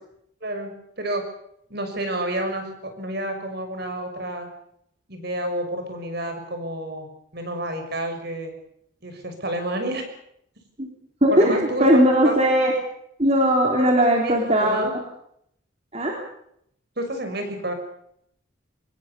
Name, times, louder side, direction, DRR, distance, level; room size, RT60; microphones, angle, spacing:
voice 1, 0.4-0.7 1.0-1.2 1.7-2.6 3.0-4.5 5.1-7.1 7.3-8.5 9.0-10.0 11.3-11.9 12.2-12.3 13.8-14.3 14.6-14.9 17.0-17.7, right 1 dB, 50° right, 6 dB, 6.2 m, -29 dB
voice 2, 11.2-12.7 13.2-15.0 15.9-16.2, equal, 30° right, 0 dB, 3.8 m, -19 dB
25.5 x 21.0 x 7.0 m, 0.72 s
head